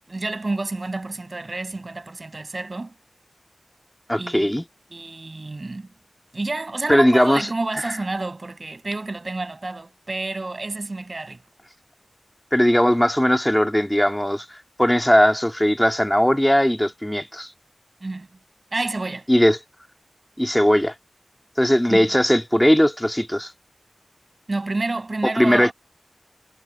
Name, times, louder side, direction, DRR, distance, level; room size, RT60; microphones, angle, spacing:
voice 1, 0.1-2.9 4.2-4.5 4.9-5.9 6.3-11.4 18.0-18.3 18.7-19.3 21.9-22.1 24.5-25.7, right 2 dB, 50° right, 6.3 m, -29 dB
voice 2, 4.1-4.7 6.9-7.5 12.5-14.5 14.8-17.5 19.3-19.6 20.4-20.9 21.6-23.5 25.2-25.7, equal, 10° left, 2.3 m, -18 dB
wide cardioid pair, 75°, 0 cm